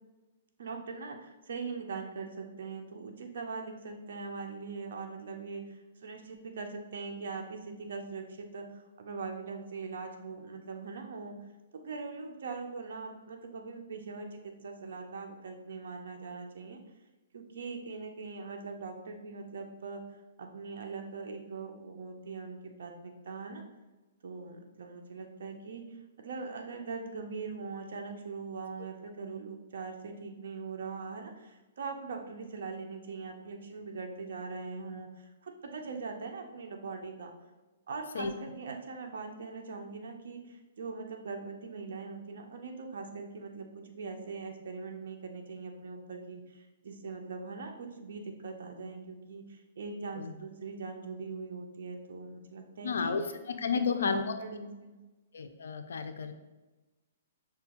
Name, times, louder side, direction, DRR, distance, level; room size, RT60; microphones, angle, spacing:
voice 1, 0.6-11.4 11.7-16.8 17.3-23.6 24.2-37.3 37.9-53.2 53.7-55.0, right 4 dB, 70° right, 3 dB, 0.5 m, -41 dB
voice 2, 52.8-53.2 53.5-54.3 55.3-56.3, left 5 dB, 85° left, 8 dB, 0.4 m, -31 dB
6.0 x 2.3 x 2.9 m, 1.1 s
hypercardioid pair, 160°, 0 cm